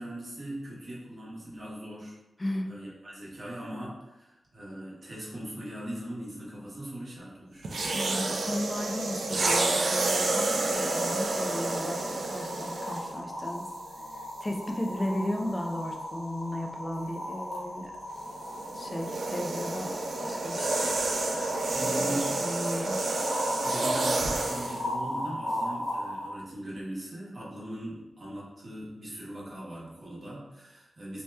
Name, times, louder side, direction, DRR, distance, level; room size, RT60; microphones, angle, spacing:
voice 1, 0.0-2.2 2.6-7.9 21.7-22.4 23.6-31.2, right 1 dB, 45° right, -6 dB, 0.9 m, -40 dB
voice 2, 2.4-2.7 7.9-13.7 14.4-17.9 18.7-20.9 22.1-23.0, left 1 dB, 20° left, 2 dB, 0.4 m, -35 dB
sound 1, 7.6-13.2 14.0-14.2 18.1-24.8, right 2 dB, 70° right, 0.4 m, -29 dB
sound 2, 10.7-26.3, left 1 dB, 60° left, 0.8 m, -38 dB
2.7 x 2.1 x 3.3 m, 0.96 s
wide cardioid pair, 150°, 0 cm